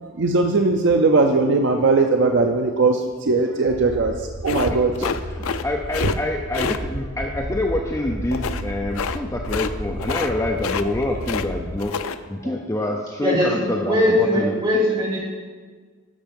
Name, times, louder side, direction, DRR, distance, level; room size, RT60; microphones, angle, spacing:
voice 1, 0.0-4.9 10.5-10.6, right 3 dB, 55° right, 4 dB, 0.5 m, -19 dB
sound 1, 3.6-11.8, equal, 85° right, 2.4 m, -33 dB
sound 2, 4.4-5.6 5.9-6.2 6.5-6.8 8.3-8.6 8.9-9.2 9.4-9.7 10.0-10.3 10.6-11.5 11.8-12.2, left 6 dB, 75° left, 0.4 m, -27 dB
voice 2, 4.7-14.9, left 1 dB, 15° left, 2 dB, 0.5 m, -27 dB
voice 3, 13.2-15.2, equal, 25° right, -7 dB, 2.9 m, -20 dB
10.5 x 6.5 x 5.3 m, 1.5 s
head